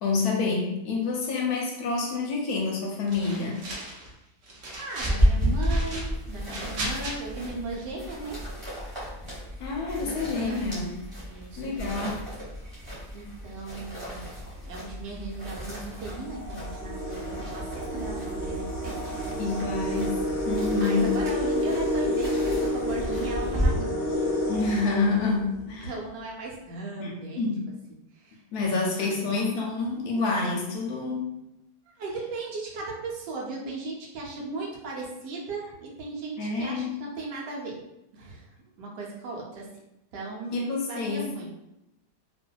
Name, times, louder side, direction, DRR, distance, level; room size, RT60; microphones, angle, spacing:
voice 1, 0.0-3.6 9.6-10.9 11.6-12.1 19.4-20.2 20.4-21.2 24.5-25.9 27.0-27.7 28.5-31.4 36.4-37.0 40.5-41.3, left 4 dB, 70° left, -1 dB, 1.0 m, -28 dB
sound 1, 3.1-4.1 4.4-5.2 5.6-7.1, right 1 dB, 65° right, 0.8 m, -36 dB
voice 2, 4.8-8.4 10.0-10.1 10.4-10.9 11.3-12.2 13.1-14.2 14.6-19.0 20.7-24.0 25.6-27.5 28.1-28.4 28.7-29.3 32.0-37.8 38.1-38.5 38.8-39.7 40.1-41.6, right 3 dB, 80° right, -3 dB, 1.3 m, -37 dB
sound 2, 5.0-23.7, equal, 20° right, 1.1 m, -33 dB
sound 3, 14.5-14.6 15.4-15.5 15.9-25.7, left 1 dB, 30° left, 0.9 m, -30 dB
2.7 x 2.5 x 2.2 m, 0.89 s
omnidirectional pair, 1.8 m